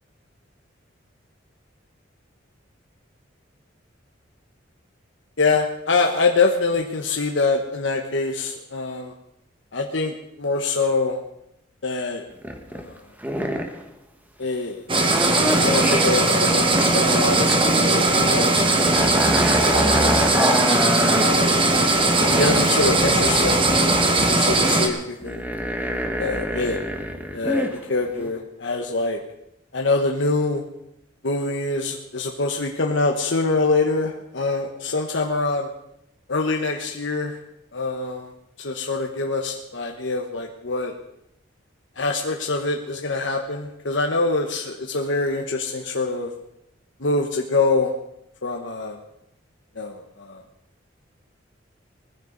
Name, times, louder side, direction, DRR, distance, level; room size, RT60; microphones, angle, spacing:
voice 1, 5.4-9.1 9.7-11.2 11.8-12.3 12.7-13.0 14.4-14.9 15.4-18.7 19.5-20.3 21.2-21.6 22.3-23.7 24.2-25.4 26.2-26.8 27.3-29.2 29.7-30.6 31.2-35.7 36.3-37.4 37.7-38.3 38.6-40.9 42.0-46.3 47.0-47.9 48.4-49.0 49.7-50.4, left 3 dB, 70° left, 2 dB, 1.2 m, -24 dB
sound 1, 12.3-12.9 13.2-13.8 15.0-17.8 18.1-21.3 21.7-27.7 28.1-28.3, equal, 10° right, 1.4 m, -26 dB
sound 2, 14.9-24.9, right 2 dB, 30° right, 1.6 m, -19 dB
20.0 x 15.0 x 4.1 m, 0.83 s
head